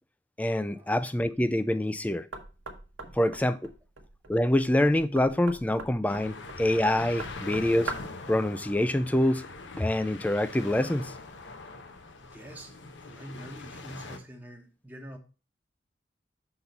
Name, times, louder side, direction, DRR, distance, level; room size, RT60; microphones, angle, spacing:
voice 1, 0.4-2.3 3.2-3.7 4.3-7.9 8.3-9.4 9.8-11.1, left 1 dB, 10° left, 0.3 m, -26 dB
Knock, 2.3-8.2, right 3 dB, 80° right, 1.1 m, -42 dB
sound 1, 6.1-14.2, left 3 dB, 70° left, 0.8 m, -43 dB
voice 2, 12.2-15.2, right 1 dB, 10° right, 0.9 m, -46 dB
6.0 x 4.2 x 5.2 m
head